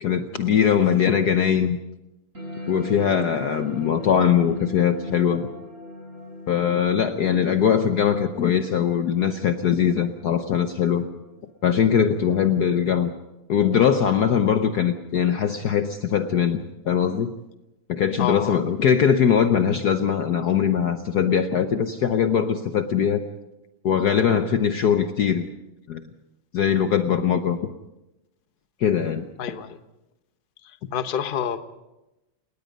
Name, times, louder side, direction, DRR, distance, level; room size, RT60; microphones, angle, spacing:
voice 1, 0.0-1.8 2.7-5.5 6.5-11.1 11.6-13.1 13.5-17.3 17.9-23.2 23.8-25.5 25.9-26.0 26.5-27.6 28.8-29.2, left 8 dB, 60° left, 8 dB, 1.1 m, -21 dB
sound 1, 2.3-13.3, left 2 dB, 35° right, 7.3 m, -40 dB
voice 2, 18.2-18.6 29.4-29.8 30.9-31.6, left 8 dB, 40° left, 9 dB, 0.8 m, -27 dB
29.5 x 18.5 x 5.3 m, 0.97 s
omnidirectional pair, 2.4 m